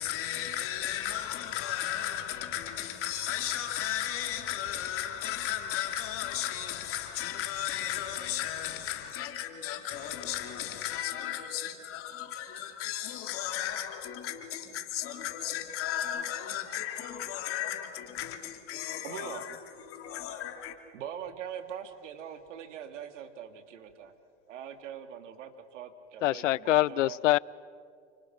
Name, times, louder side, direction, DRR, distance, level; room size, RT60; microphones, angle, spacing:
voice 1, 0.0-20.8, left 11 dB, 35° left, 2.6 m, -35 dB
voice 2, 19.0-19.5 20.9-24.1 24.5-27.2, right 9 dB, 80° right, 2.2 m, -42 dB
voice 3, 26.2-27.4, left 16 dB, 85° left, 0.5 m, -24 dB
30.0 x 25.0 x 5.9 m
supercardioid pair, 135°, 36 cm